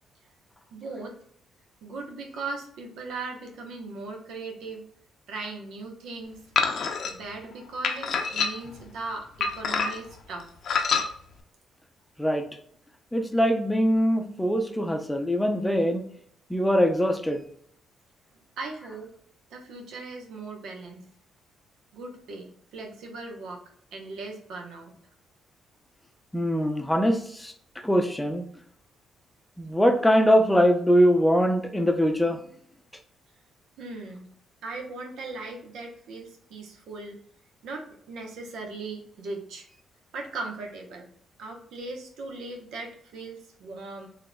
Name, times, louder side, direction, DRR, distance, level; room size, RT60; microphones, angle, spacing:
voice 1, 0.7-1.2 1.8-4.9 5.3-6.4 7.0-10.5 18.6-19.1 19.5-21.1 21.9-23.6 23.9-24.9 33.8-34.3 34.6-37.2 37.6-39.6 40.1-41.1 41.4-44.1, right 3 dB, 80° right, 1 dB, 0.8 m, -38 dB
sound 1, 6.6-7.1 7.8-8.8 9.4-10.1 10.7-11.1, left 5 dB, 60° left, 0.5 m, -26 dB
voice 2, 13.1-16.0 16.5-17.4 26.3-27.5 27.8-28.4 29.6-32.4, equal, 5° left, 4 dB, 0.6 m, -22 dB
3.8 x 2.9 x 2.2 m, 0.63 s
cardioid pair, 90°, 0 cm